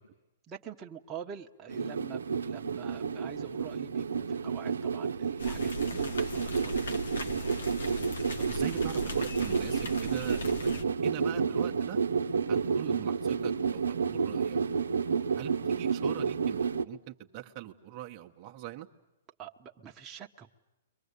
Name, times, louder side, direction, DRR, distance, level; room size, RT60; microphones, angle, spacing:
voice 1, 0.5-6.7 12.5-12.7 15.3-15.4 19.4-20.5, right 8 dB, 20° right, 1 dB, 1.3 m, -46 dB
sound 1, 1.7-16.8, right 5 dB, 85° right, 0.9 m, -30 dB
sound 2, 5.4-10.8, left 2 dB, 80° left, 1.6 m, -39 dB
voice 2, 8.4-10.7 11.0-12.0 12.5-14.6 15.3-18.9, right 14 dB, 40° right, 3 dB, 1.2 m, -42 dB
30.0 x 23.5 x 8.4 m, 0.98 s
hypercardioid pair, 130°, 0 cm